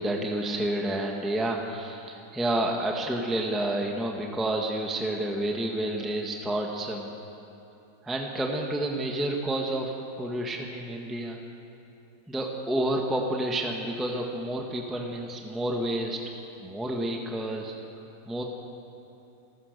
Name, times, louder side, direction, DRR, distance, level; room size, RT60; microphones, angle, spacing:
voice 1, 0.0-7.1 8.0-11.4 12.3-16.2 16.6-17.7 18.3-18.4, right 1 dB, ahead, 1 dB, 1.5 m, -29 dB
27.5 x 15.5 x 6.8 m, 2.8 s
omnidirectional pair, 2.3 m